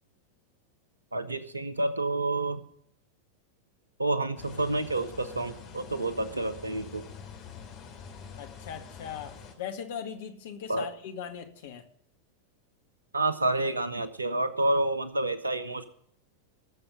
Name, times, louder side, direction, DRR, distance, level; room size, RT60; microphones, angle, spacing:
voice 1, 1.1-2.6 4.0-7.0 10.7-10.9 13.1-15.8, right 2 dB, 80° right, 13 dB, 1.2 m, -29 dB
sound 1, 4.4-9.5, left 6 dB, 40° left, 2.8 m, -46 dB
voice 2, 8.4-11.8, left 8 dB, 55° left, 5 dB, 1.9 m, -39 dB
20.0 x 7.0 x 5.4 m, 0.65 s
figure-of-eight pair, 90°, 0 cm